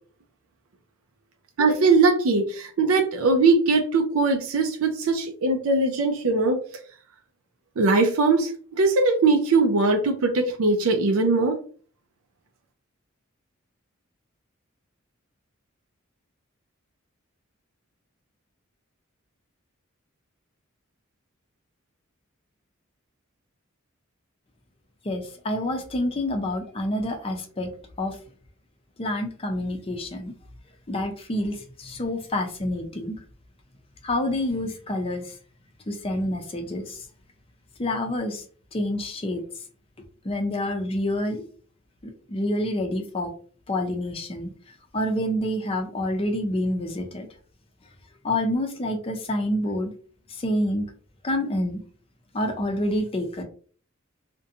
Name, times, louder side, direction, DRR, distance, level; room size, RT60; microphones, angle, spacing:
voice 1, 1.6-6.6 7.8-8.5 8.8-11.6, right 3 dB, 80° right, 4 dB, 0.4 m, -21 dB
voice 2, 25.0-27.7 28.0-28.2 29.0-30.3 30.9-33.2 34.0-35.3 35.9-37.0 37.8-38.4 38.7-39.4 40.2-41.4 42.0-43.3 43.7-44.5 44.9-47.3 48.2-49.9 50.3-50.9 51.2-51.8 52.3-53.4, left 1 dB, 25° left, 3 dB, 0.5 m, -27 dB
2.5 x 2.1 x 2.7 m, 0.43 s
head